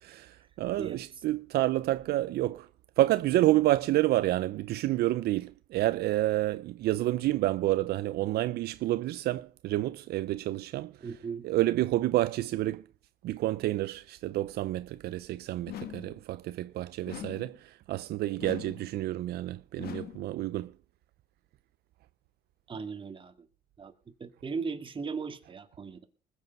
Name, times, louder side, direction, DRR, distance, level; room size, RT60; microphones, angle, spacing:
voice 1, 0.0-2.7 3.0-11.1 11.4-12.8 13.2-20.7, right 16 dB, 70° right, 0.6 m, -29 dB
voice 2, 11.0-11.4 22.7-23.5 23.8-23.9 24.2-26.0, right 5 dB, 30° right, 2.0 m, -37 dB
sound 1, 15.7-16.2 17.1-17.6 18.4-18.9 19.8-20.3, left 11 dB, 65° left, 1.3 m, -41 dB
20.5 x 8.1 x 5.3 m
cardioid pair, 110°, 17 cm